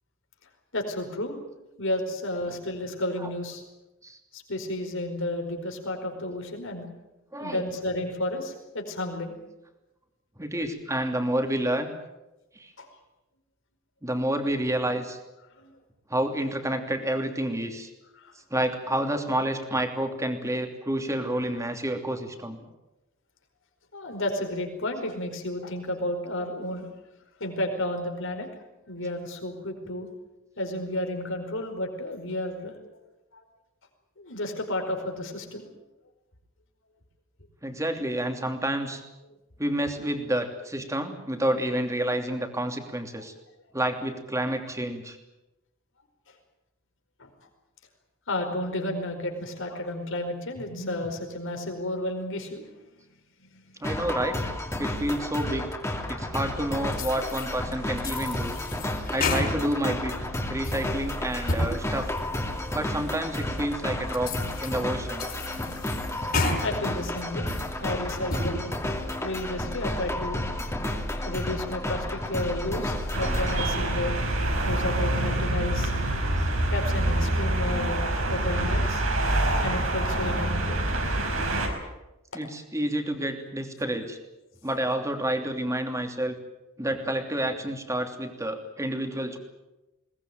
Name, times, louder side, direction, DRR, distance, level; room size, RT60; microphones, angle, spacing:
voice 1, 0.7-1.4 1.8-3.6 4.3-6.9 7.4-9.4 12.8-12.9 15.6-15.7 18.1-18.3 23.9-26.9 27.4-28.5 28.9-30.1 30.6-32.9 33.3-33.4 34.2-35.7 46.3-46.4 47.2-47.3 48.3-52.7 53.4-53.8 66.6-67.5 67.8-68.7 69.2-70.4 70.9-74.2 74.6-75.9 76.7-79.0 79.6-81.0, left 1 dB, 65° left, 4 dB, 4.8 m, -32 dB
voice 2, 7.3-7.8 10.4-11.9 12.6-12.7 14.0-15.2 16.1-17.9 18.5-22.6 37.6-39.0 39.6-43.3 43.7-45.2 53.8-54.4 54.8-55.7 56.1-58.5 59.1-60.1 60.5-62.1 62.7-64.3 64.6-65.3 82.3-84.2 84.6-86.3 86.8-89.4, right 1 dB, 15° right, 5 dB, 2.9 m, -29 dB
sound 1, 53.8-73.7, left 1 dB, 15° left, 2.8 m, -32 dB
sound 2, 56.9-57.5 58.0-59.9 60.3-60.9 61.3-61.7 62.2-62.3 62.9-63.0 63.6-63.7 64.1-64.8 65.2-66.6 67.0-67.7 68.1-68.6, left 2 dB, 45° left, 5.3 m, -31 dB
sound 3, 73.1-81.7, right 1 dB, 70° right, 5.2 m, -26 dB
21.5 x 19.5 x 9.3 m, 0.99 s
head